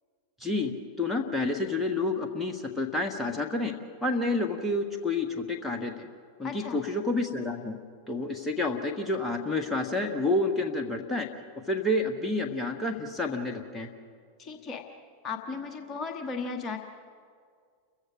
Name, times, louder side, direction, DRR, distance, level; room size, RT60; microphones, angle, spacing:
voice 1, 0.4-0.7 1.0-3.7 4.0-6.1 6.4-7.8 8.1-11.3 11.7-13.9, left 2 dB, 5° left, 2 dB, 1.6 m, -29 dB
voice 2, 6.4-6.8 14.4-14.8 15.2-16.8, left 4 dB, 25° left, 4 dB, 1.5 m, -35 dB
29.0 x 15.5 x 6.3 m, 2.1 s
figure-of-eight pair, 90°, 0 cm